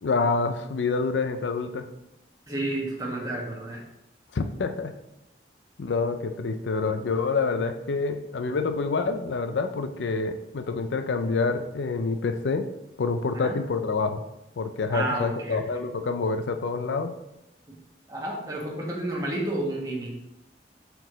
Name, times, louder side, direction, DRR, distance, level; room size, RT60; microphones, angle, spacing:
voice 1, 0.0-1.9 4.3-4.9 5.8-12.7 13.0-14.2 14.6-17.1, left 4 dB, 85° left, 8 dB, 0.5 m, -27 dB
voice 2, 2.5-3.8 13.3-13.5 14.9-15.6 17.7-17.8 18.1-20.2, right 1 dB, 20° right, -2 dB, 1.3 m, -31 dB
6.2 x 4.7 x 3.8 m, 0.88 s
head